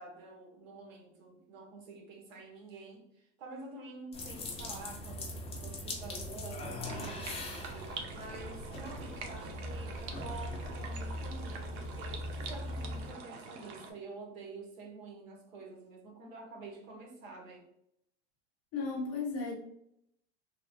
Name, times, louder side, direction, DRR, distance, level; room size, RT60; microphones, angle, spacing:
voice 1, 0.0-7.6 8.1-17.6, right 2 dB, 85° right, 0 dB, 1.1 m, -48 dB
sound 1, 4.1-13.1, left 1 dB, 15° left, 0.6 m, -41 dB
sound 2, 6.9-13.9, right 5 dB, 70° right, 0.7 m, -46 dB
voice 2, 18.7-19.5, left 4 dB, 40° left, 0 dB, 1.1 m, -34 dB
3.0 x 2.2 x 2.6 m, 0.76 s
supercardioid pair, 115°, 38 cm